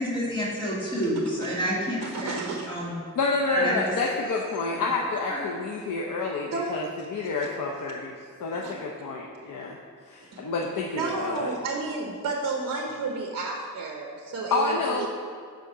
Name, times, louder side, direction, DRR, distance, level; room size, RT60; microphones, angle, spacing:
voice 1, 0.0-2.4 2.7-2.9 3.5-3.8 4.8-4.9 5.2-5.4, equal, 15° left, -6 dB, 2.3 m, -28 dB
voice 2, 2.0-2.8 6.5-6.8 8.5-8.7 10.3-10.4 11.0-15.1, right 3 dB, 55° right, 1 dB, 0.9 m, -31 dB
voice 3, 3.2-6.8 7.1-8.1 8.4-9.8 10.1-11.5 14.5-15.1, left 3 dB, 75° left, -1 dB, 0.8 m, -28 dB
8.1 x 5.1 x 6.1 m, 2.1 s
wide cardioid pair, 155°, 32 cm